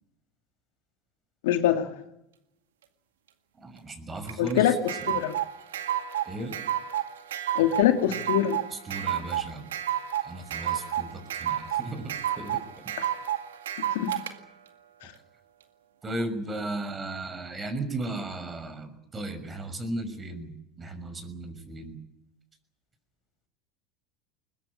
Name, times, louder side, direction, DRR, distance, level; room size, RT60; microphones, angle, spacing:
voice 1, 1.4-1.9 4.4-4.7 5.1-5.4 7.6-8.6 13.0-13.1 13.9-14.2, left 11 dB, 75° left, 6 dB, 2.4 m, -24 dB
voice 2, 3.6-4.8 6.2-6.6 8.7-9.7 10.2-12.1 12.4-12.6 16.0-22.0, right 2 dB, 25° right, 10 dB, 6.1 m, -35 dB
sound 1, 4.3-14.3, right 11 dB, 85° right, 2.1 m, -30 dB
21.5 x 21.5 x 8.6 m, 0.84 s
hypercardioid pair, 95°, 0 cm